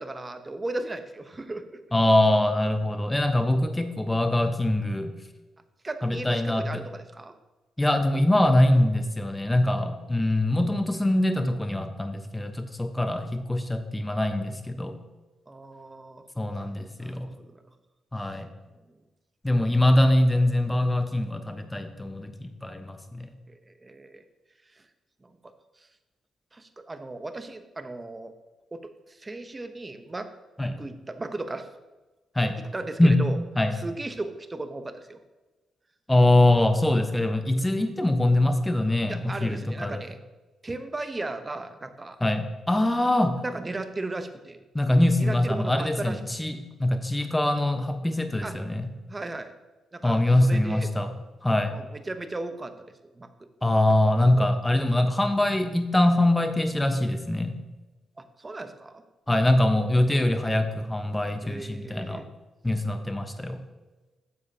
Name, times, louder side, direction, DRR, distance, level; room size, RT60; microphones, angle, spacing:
voice 1, 0.0-1.7 5.8-7.3 13.1-13.2 15.5-16.2 17.0-17.5 18.2-18.4 18.8-18.9 23.5-24.2 24.7-24.8 25.2-25.3 25.8-25.9 26.5-28.3 28.7-30.3 30.8-31.7 32.7-33.4 33.7-35.2 39.1-40.2 40.6-42.2 43.4-44.6 45.2-46.2 48.4-48.6 49.1-49.5 49.9-50.9 51.7-52.9 53.2-53.5 54.2-54.6 58.2-59.0 61.4-62.3, right 2 dB, 25° right, 9 dB, 0.9 m, -36 dB
voice 2, 1.9-5.1 6.0-6.8 7.8-14.9 16.4-17.3 18.1-18.5 19.4-23.3 30.6-30.8 32.3-32.6 33.0-33.3 33.6-33.8 36.1-40.0 42.2-43.4 44.7-48.9 50.0-51.1 51.4-51.7 53.6-57.6 59.3-62.2 62.6-63.6, left 1 dB, 15° left, 7 dB, 1.0 m, -23 dB
10.0 x 7.3 x 2.8 m, 1.1 s
supercardioid pair, 65°, 0 cm